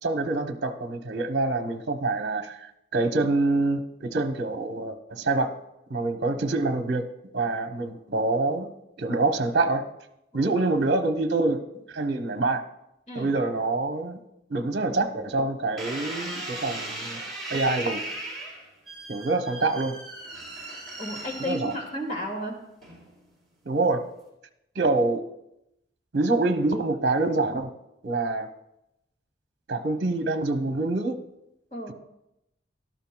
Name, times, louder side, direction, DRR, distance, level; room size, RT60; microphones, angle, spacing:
voice 1, 0.0-5.5 5.9-7.0 7.3-8.7 9.0-9.8 10.3-11.6 11.9-12.6 13.1-14.2 14.5-17.2 17.5-18.0 19.1-20.0 21.4-21.7 23.7-24.0 24.8-25.2 26.1-27.7 28.0-28.5 29.7-31.2, right 2 dB, 55° right, 6 dB, 0.8 m, -26 dB
sound 1, 15.8-22.2 22.8-23.3, right 2 dB, ahead, 3.9 m, -37 dB
voice 2, 21.0-22.6 31.7-31.9, left 1 dB, 40° left, 1 dB, 2.0 m, -33 dB
17.5 x 12.5 x 2.2 m, 0.86 s
head